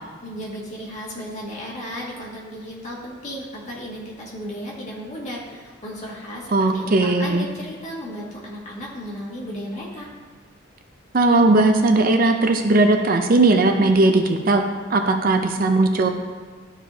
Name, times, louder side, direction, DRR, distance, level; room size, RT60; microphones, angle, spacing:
voice 1, 0.2-10.1, equal, 35° left, -5 dB, 2.0 m, -34 dB
voice 2, 6.5-7.5 11.1-14.6 14.9-16.1, right 2 dB, 45° right, 5 dB, 0.5 m, -18 dB
13.0 x 4.8 x 2.7 m, 1.5 s
head